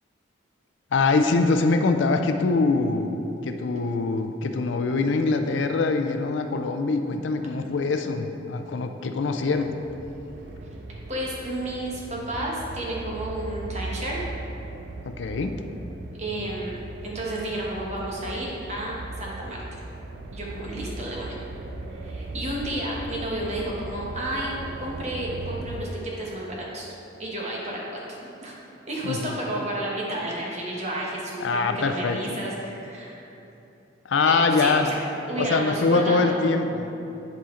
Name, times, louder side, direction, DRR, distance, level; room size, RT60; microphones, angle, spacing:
voice 1, 0.9-9.8 15.1-15.5 29.0-29.2 31.4-32.2 34.1-34.9 35.4-36.9, left 3 dB, 80° left, 7 dB, 0.4 m, -23 dB
sound 1, 9.6-25.8, right 2 dB, 60° right, 0.4 m, -38 dB
voice 2, 11.1-14.2 16.2-16.8 17.0-19.6 20.3-21.3 21.9-24.5 24.8-26.9 27.2-28.5 28.9-33.3 34.3-35.0 35.3-36.4, right 1 dB, 35° right, -4 dB, 1.2 m, -31 dB
10.5 x 4.3 x 3.7 m, 2.9 s
head